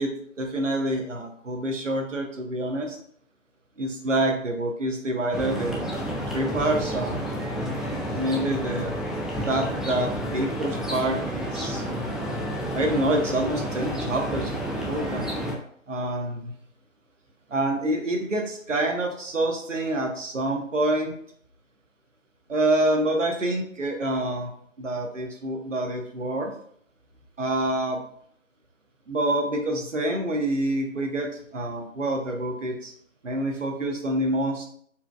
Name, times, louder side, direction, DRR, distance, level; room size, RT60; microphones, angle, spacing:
voice 1, 0.0-3.0 3.8-6.0 6.3-7.2 8.1-8.9 9.4-11.8 12.7-15.3 15.9-16.5 17.5-21.2 22.5-24.5 24.8-26.5 27.4-28.0 29.1-32.9 33.2-34.7, right 1 dB, 65° right, 3 dB, 0.9 m, -27 dB
sound 1, 5.3-15.5, equal, ahead, 0.4 m, -30 dB
4.5 x 3.5 x 2.3 m, 0.63 s
figure-of-eight pair, 170°, 40 cm